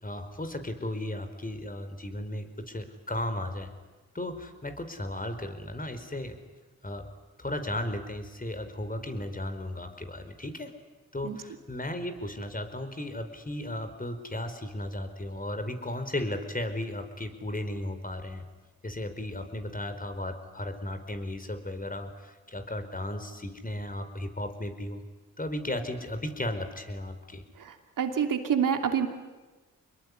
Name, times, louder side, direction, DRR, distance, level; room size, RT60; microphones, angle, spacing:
voice 1, 0.0-3.7 4.1-6.4 6.8-7.0 7.4-10.7 11.1-18.4 18.8-25.0 25.4-27.4, left 1 dB, 25° left, 8 dB, 4.8 m, -35 dB
voice 2, 27.6-29.1, right 8 dB, 80° right, 6 dB, 2.9 m, -27 dB
26.5 x 21.5 x 9.9 m, 1.2 s
supercardioid pair, 50°, 32 cm